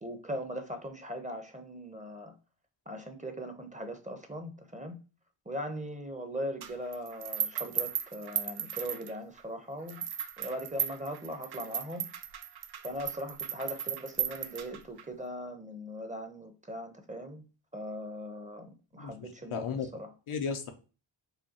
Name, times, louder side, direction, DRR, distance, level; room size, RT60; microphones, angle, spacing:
voice 1, 0.0-2.3 2.9-5.0 5.5-10.0 10.4-12.1 12.8-17.4 17.7-19.6 19.9-20.1, equal, 15° right, 5 dB, 0.8 m, -39 dB
sound 1, 6.6-9.4 9.9-15.0, right 9 dB, 50° right, 0.5 m, -36 dB
voice 2, 19.0-19.9 20.3-20.7, left 6 dB, 75° left, 5 dB, 0.7 m, -35 dB
4.9 x 2.3 x 2.9 m, 0.34 s
cardioid pair, 55°, 49 cm